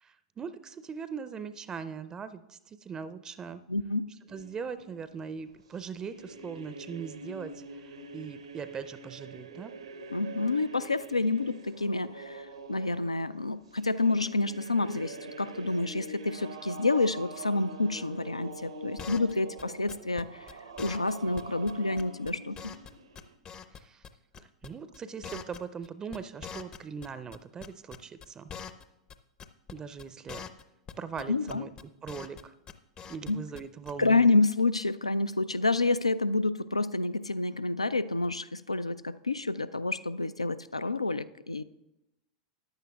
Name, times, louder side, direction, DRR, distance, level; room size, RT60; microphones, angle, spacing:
voice 1, 0.0-3.6 4.3-9.7 23.7-24.0 24.4-28.5 29.7-30.4 31.0-31.7 32.0-32.5 33.1-34.3, right 6 dB, 20° right, 13 dB, 0.5 m, -40 dB
voice 2, 3.7-4.1 10.1-20.5 20.8-22.7 31.3-31.7 33.3-33.4 34.0-41.6, left 3 dB, 85° left, 15 dB, 0.3 m, -28 dB
sound 1, 4.3-23.3, right 3 dB, 75° right, 0.8 m, -45 dB
sound 2, 19.0-19.3 19.6-19.7 19.9-20.2 20.5-20.6 20.8-21.1 21.4-21.5 21.7-21.8 22.0-22.9 23.2-24.1 24.3-24.7 24.9-27.1 27.3-28.8 29.1-29.2 29.4-29.7 30.0-30.1 30.3-30.6 30.9-31.2 31.5-32.4 32.7-33.3 33.6-33.7 33.9-34.0, left 7 dB, 25° left, 0.6 m, -43 dB
14.5 x 10.5 x 2.3 m, 0.94 s
figure-of-eight pair, 90°, 3 cm